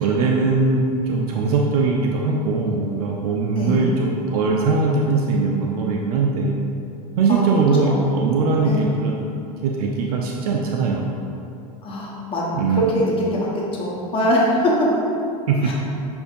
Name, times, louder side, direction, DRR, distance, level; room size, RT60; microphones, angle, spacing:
voice 1, 0.0-6.5 7.2-9.1 9.6-11.0 12.5-12.9 15.5-15.7, right 4 dB, 80° right, 0 dB, 0.4 m, -20 dB
voice 2, 3.5-3.9 7.3-7.5 7.8-8.1 8.6-8.9 11.8-14.9 15.6-15.7, equal, 30° left, -5 dB, 1.0 m, -22 dB
6.7 x 2.5 x 2.5 m, 2.7 s
hypercardioid pair, 100°, 19 cm